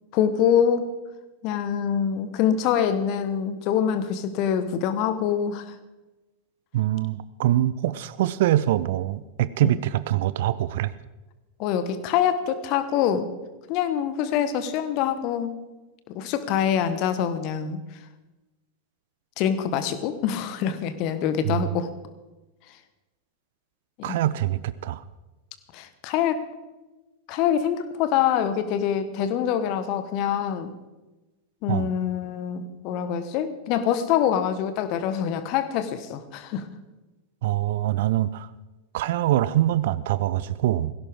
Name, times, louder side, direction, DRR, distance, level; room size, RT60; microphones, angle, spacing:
voice 1, 0.1-0.9 1.4-5.7 9.6-9.7 11.6-13.3 13.7-15.5 16.1-17.8 19.4-21.9 24.1-24.2 25.7-26.4 27.3-30.7 31.6-36.7, left 9 dB, 40° left, 11 dB, 1.3 m, -25 dB
voice 2, 6.7-10.9 21.4-21.6 24.0-25.0 31.7-31.9 37.4-38.5 38.9-40.9, right 13 dB, 55° right, 17 dB, 0.6 m, -24 dB
17.5 x 16.5 x 3.7 m, 1.1 s
figure-of-eight pair, 90°, 0 cm